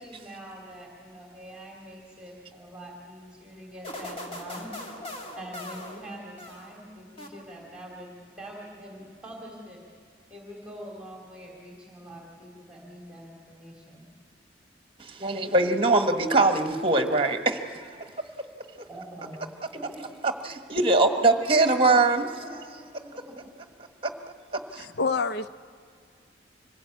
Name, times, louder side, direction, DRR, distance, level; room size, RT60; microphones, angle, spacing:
voice 1, 0.0-4.7 5.4-8.1 8.4-9.8 10.3-14.1 18.8-19.4 19.7-20.1 20.4-20.5 21.3-23.4, right 1 dB, 5° right, -2 dB, 2.8 m, -44 dB
sound 1, 3.8-6.8 7.2-7.8, left 1 dB, 30° left, 2.1 m, -40 dB
voice 2, 15.0-18.0 20.5-22.3 24.7-24.8, right 2 dB, 30° right, 6 dB, 1.3 m, -22 dB
voice 3, 24.8-25.5, left 4 dB, 55° left, 12 dB, 0.6 m, -27 dB
25.0 x 16.5 x 8.4 m, 2.1 s
head